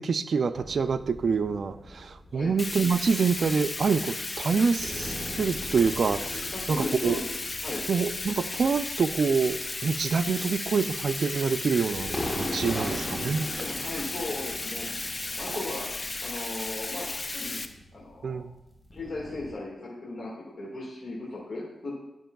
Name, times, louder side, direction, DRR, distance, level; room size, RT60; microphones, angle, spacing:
voice 1, 0.0-6.4 6.7-7.2 7.9-13.5 18.2-18.5, right 5 dB, 65° right, 12 dB, 0.4 m, -26 dB
sound 1, 0.5-19.5, left 1 dB, 15° left, 1.3 m, -41 dB
Bathtub (filling or washing), 2.6-17.7, left 2 dB, 35° left, 0.5 m, -35 dB
voice 2, 6.3-7.2 7.6-7.8 10.4-10.5 12.7-13.0 13.6-14.9 15.4-15.8 16.2-17.6 17.9-18.4 18.9-21.9, left 2 dB, 55° left, -5 dB, 1.6 m, -37 dB
11.5 x 5.3 x 2.3 m, 0.91 s
cardioid pair, 75°, 0 cm